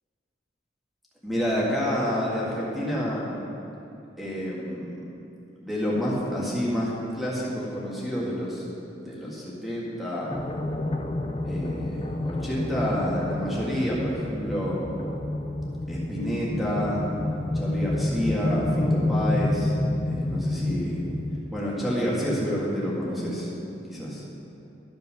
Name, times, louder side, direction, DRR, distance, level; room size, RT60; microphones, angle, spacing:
voice 1, 1.2-3.4 4.2-4.9 5.6-8.6 9.0-10.3 11.4-15.0 15.9-17.0 17.5-19.7 20.1-21.0 21.5-23.5 23.9-24.2, equal, ahead, -7 dB, 1.8 m, -29 dB
sound 1, 10.3-21.4, left 1 dB, 30° left, 0.5 m, -29 dB
12.0 x 5.3 x 5.7 m, 2.8 s
head